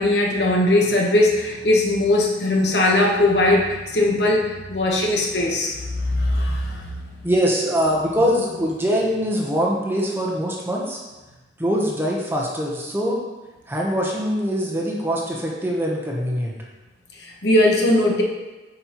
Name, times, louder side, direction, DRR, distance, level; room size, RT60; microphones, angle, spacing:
voice 1, 0.0-7.0 17.2-18.2, left 1 dB, 75° left, 0 dB, 1.1 m, -19 dB
voice 2, 7.2-11.0 11.6-13.2 13.7-16.6, equal, 10° right, -2 dB, 0.9 m, -23 dB
8.5 x 5.3 x 3.0 m, 1.1 s
head